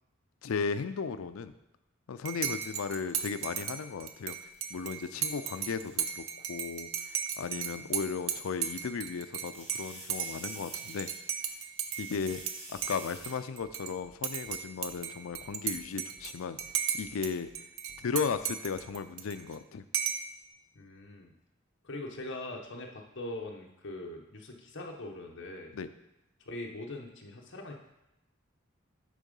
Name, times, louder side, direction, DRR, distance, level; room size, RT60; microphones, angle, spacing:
voice 1, 0.4-1.5 2.1-4.4 4.7-6.2 6.5-11.1 12.0-12.4 12.7-16.6 16.9-17.5 18.0-19.8 25.7-25.9, left 5 dB, 80° left, 11 dB, 0.4 m, -35 dB
Dishes pots and pans / Cutlery silverware / Chink clink, 2.2-12.5 12.8-13.9 14.2-17.3 17.5-19.5 19.9-20.3, right 8 dB, 80° right, 0.6 m, -35 dB
sound 1, 4.3-6.0 7.1-7.2 9.1-11.5 11.8-13.3, right 2 dB, 30° right, 1.3 m, -49 dB
sound 2, 12.7-12.9 13.2-13.3 13.6-13.7 14.0-14.2 14.5-14.6 14.9-15.0 15.3-15.9 16.2-16.3 16.6-16.7 17.0-17.2 17.5-17.6 17.9-18.0 18.3-18.4 18.7-19.0, left 1 dB, 10° left, 0.6 m, -59 dB
voice 2, 20.7-21.3 21.8-25.7 26.4-27.7, left 2 dB, 60° left, 1 dB, 1.0 m, -42 dB
8.6 x 3.7 x 5.4 m, 0.90 s
head